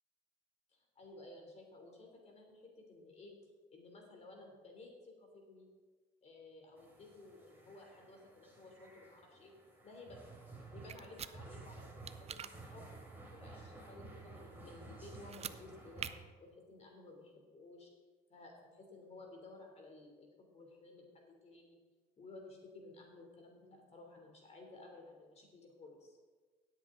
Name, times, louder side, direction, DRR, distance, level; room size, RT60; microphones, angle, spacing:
voice 1, 0.7-3.3 3.7-5.7 6.2-9.5 9.8-10.2 10.7-13.0 13.3-16.1 16.4-17.9 18.3-21.8 22.2-26.2, left 2 dB, 40° left, 1 dB, 3.4 m, -55 dB
sound 1, 6.8-16.1, right 2 dB, 10° right, 3.4 m, -54 dB
sound 2, 10.9-11.3 12.1-12.5 15.2-15.6 16.0-16.1, right 9 dB, 40° right, 0.5 m, -43 dB
17.5 x 8.1 x 3.9 m, 1.4 s
cardioid pair, 110°, 17 cm